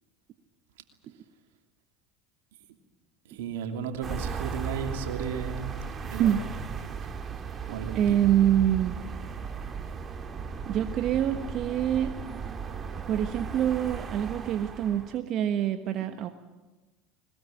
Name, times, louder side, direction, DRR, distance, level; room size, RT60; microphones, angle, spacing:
voice 1, 3.3-6.6 7.7-8.2, right 7 dB, 80° right, 5 dB, 2.8 m, -35 dB
sound 1, 4.0-15.2, right 6 dB, 35° right, 2.4 m, -36 dB
voice 2, 7.9-9.0 10.6-12.1 13.1-16.3, right 10 dB, 55° right, 8 dB, 1.3 m, -25 dB
21.5 x 20.0 x 9.2 m, 1.1 s
hypercardioid pair, 85°, 0 cm